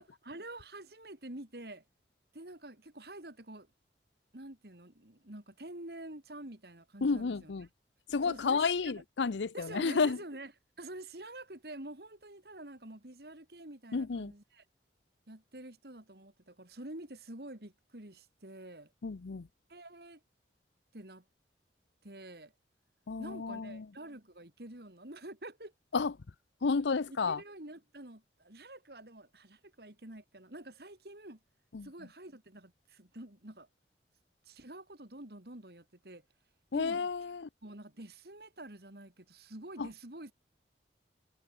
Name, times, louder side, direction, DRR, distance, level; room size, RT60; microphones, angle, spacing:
voice 1, 0.0-1.8 2.3-3.7 4.3-7.5 8.2-9.0 9.5-10.5 10.8-14.6 15.3-18.9 19.7-20.2 20.9-21.2 22.0-22.5 23.2-25.7 27.1-31.4 31.8-33.7 34.4-36.2 36.7-37.0 37.6-40.3, right 1 dB, 60° right, 2.8 m, -48 dB
voice 2, 7.0-7.7 8.1-10.2 13.9-14.3 19.0-19.5 23.1-23.9 25.9-26.1 26.6-27.4 31.7-31.9 36.7-37.5 39.8-39.9, left 4 dB, 85° left, 0.6 m, -31 dB
head